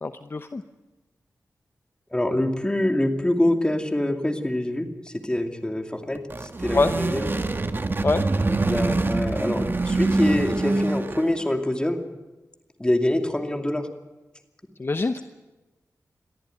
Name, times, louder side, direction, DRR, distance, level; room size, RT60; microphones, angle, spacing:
voice 1, 0.0-0.6 6.7-6.9 8.0-8.2 14.8-15.2, left 3 dB, 40° left, 9 dB, 0.8 m, -24 dB
voice 2, 2.1-7.3 8.5-12.0 12.8-13.9, left 1 dB, 15° left, 5 dB, 2.6 m, -25 dB
sound 1, 6.1-11.5, right 2 dB, 40° right, 1.3 m, -25 dB
23.0 x 14.0 x 9.4 m, 1.1 s
wide cardioid pair, 70°, 6 cm